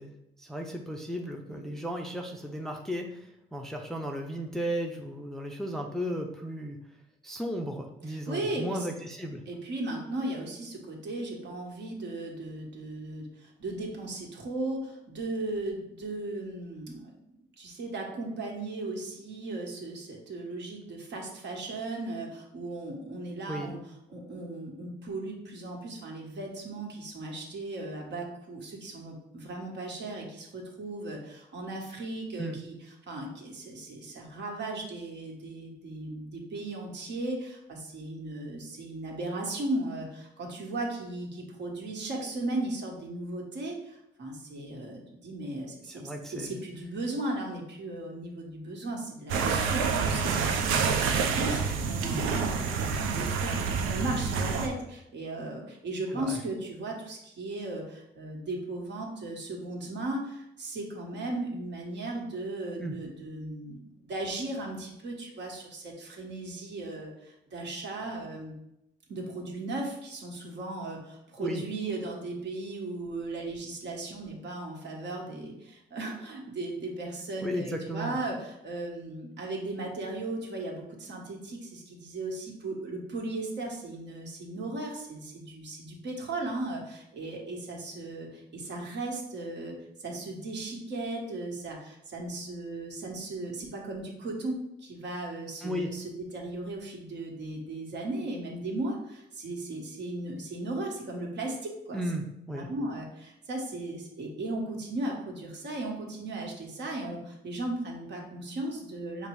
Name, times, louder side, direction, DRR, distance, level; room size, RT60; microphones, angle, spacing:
voice 1, 0.0-6.8 7.2-9.4 23.5-23.7 32.4-32.6 45.9-46.6 56.1-56.4 62.8-63.0 71.4-71.6 77.4-78.2 95.6-95.9 101.9-102.7, equal, ahead, 2 dB, 0.5 m, -35 dB
voice 2, 8.1-8.9 9.5-17.1 17.6-23.8 24.1-32.7 33.1-46.0 46.3-68.5 69.1-102.0 102.5-109.3, right 2 dB, 65° right, 0 dB, 1.3 m, -36 dB
sound 1, 49.3-54.7, right 5 dB, 90° right, 0.5 m, -28 dB
5.1 x 2.0 x 4.6 m, 0.83 s
cardioid pair, 90°, 20 cm